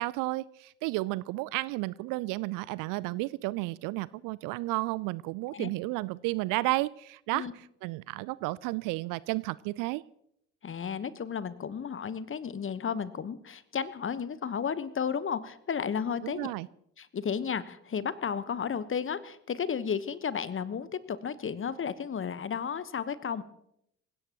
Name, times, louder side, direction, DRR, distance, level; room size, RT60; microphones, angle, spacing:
voice 1, 0.0-10.0 16.2-16.7, right 21 dB, 50° right, 21 dB, 0.5 m, -32 dB
voice 2, 10.6-16.5 17.0-23.4, left 7 dB, 30° left, 15 dB, 1.2 m, -33 dB
27.5 x 16.5 x 3.0 m, 0.77 s
figure-of-eight pair, 50°, 42 cm